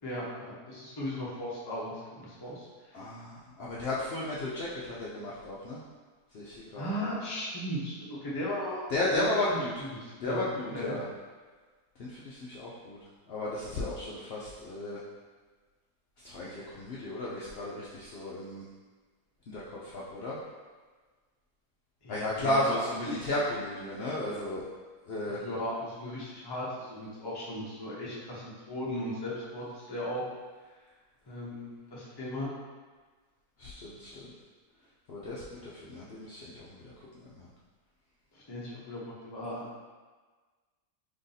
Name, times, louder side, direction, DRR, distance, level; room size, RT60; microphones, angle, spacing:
voice 1, 0.0-2.9 6.8-9.3 9.8-11.0 22.0-22.8 25.3-30.2 31.3-32.5 38.3-39.8, left 1 dB, 30° left, -6 dB, 0.5 m, -37 dB
voice 2, 2.9-5.8 6.3-7.0 8.9-9.7 10.2-11.0 12.0-13.0 13.3-15.0 16.2-18.6 19.5-20.4 22.1-24.7 25.1-25.4 33.6-34.2 35.1-37.5, left 1 dB, 80° left, -6 dB, 0.5 m, -34 dB
3.3 x 2.6 x 3.9 m, 1.4 s
omnidirectional pair, 1.6 m